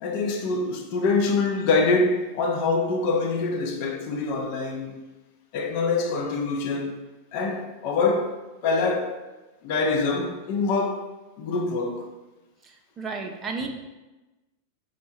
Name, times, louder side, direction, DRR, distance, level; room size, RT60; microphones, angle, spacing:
voice 1, 0.0-4.9 5.5-7.0 7.3-8.4 8.6-9.2 9.6-11.1 11.4-12.1 13.6-13.7, left 3 dB, 45° left, 0.6 m, -25 dB
voice 2, 12.6-13.7, right 4 dB, 25° right, 0.4 m, -33 dB
4.3 x 2.1 x 4.3 m
figure-of-eight pair, 90°, 0 cm